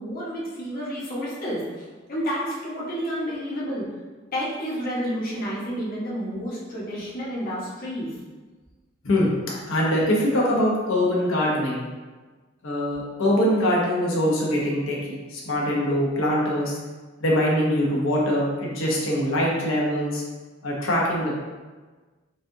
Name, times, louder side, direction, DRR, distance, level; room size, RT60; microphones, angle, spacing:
voice 1, 0.0-3.8 4.3-8.1, equal, 50° left, -7 dB, 0.9 m, -30 dB
voice 2, 9.7-11.8 12.6-16.8 17.2-20.2 20.6-21.4, equal, 85° left, -4 dB, 0.9 m, -23 dB
4.1 x 2.3 x 2.6 m, 1.3 s
head